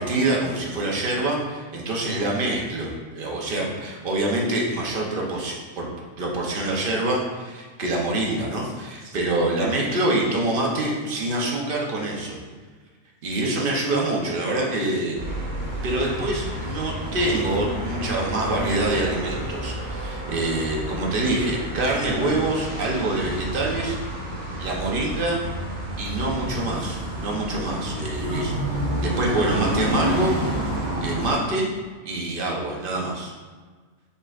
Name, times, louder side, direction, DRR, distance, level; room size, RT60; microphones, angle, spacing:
voice 1, 0.0-5.8 6.2-12.4 13.2-15.2 15.8-24.0 24.6-25.4 26.0-28.5 29.0-30.4 30.6-31.7 32.0-33.3, right 2 dB, 45° right, -2 dB, 0.9 m, -25 dB
sound 1, 15.2-31.3, right 1 dB, 85° right, 1.4 m, -30 dB
5.3 x 3.8 x 2.4 m, 1.5 s
omnidirectional pair, 1.4 m